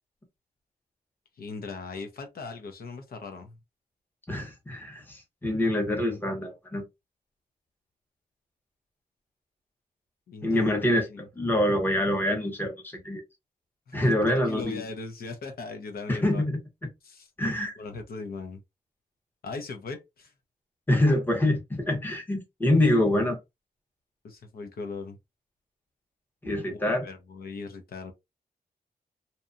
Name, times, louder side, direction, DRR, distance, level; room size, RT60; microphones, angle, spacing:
voice 1, 1.4-3.6 10.3-10.8 11.1-11.3 13.9-16.5 17.0-17.3 17.8-18.6 19.4-20.3 24.2-25.2 26.7-28.1, left 4 dB, 70° left, 0.6 m, -39 dB
voice 2, 4.3-6.8 10.4-11.0 11.3-13.2 13.9-14.8 16.1-16.9 17.4-17.7 20.9-23.4 26.4-27.1, left 1 dB, 10° left, 0.8 m, -25 dB
2.7 x 2.2 x 2.5 m
wide cardioid pair, 165°, 16 cm